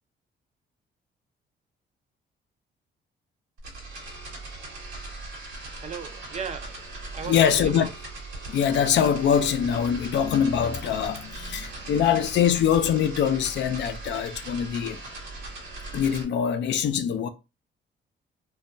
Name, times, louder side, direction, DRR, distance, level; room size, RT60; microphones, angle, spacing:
sound 1, 3.6-16.2, right 2 dB, 80° right, 1.0 m, -39 dB
voice 1, 5.8-7.9, right 6 dB, 35° right, 0.4 m, -36 dB
voice 2, 7.3-7.9 8.5-15.0 15.9-17.3, left 8 dB, 65° left, 0.4 m, -23 dB
2.2 x 2.2 x 2.5 m
cardioid pair, 90°, 20 cm